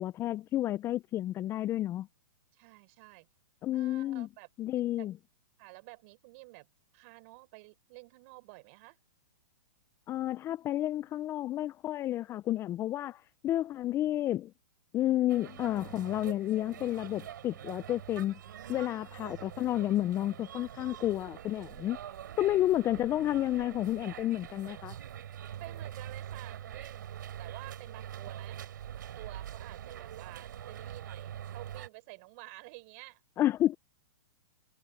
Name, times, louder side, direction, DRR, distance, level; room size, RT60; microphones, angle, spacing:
voice 1, 0.0-2.1 3.6-4.3 4.6-5.1 10.1-14.5 14.9-18.4 18.7-22.0 22.4-25.0 33.4-33.7, left 13 dB, 25° left, 0.6 m, -31 dB
voice 2, 2.5-3.3 3.7-4.5 5.0-5.1 5.6-6.7 6.9-9.0 18.6-19.1 22.2-22.6 25.6-28.6 28.9-33.2, right 28 dB, 45° right, 5.5 m, -51 dB
sound 1, 15.3-31.9, right 10 dB, 70° right, 5.9 m, -44 dB
hypercardioid pair, 125°, 11 cm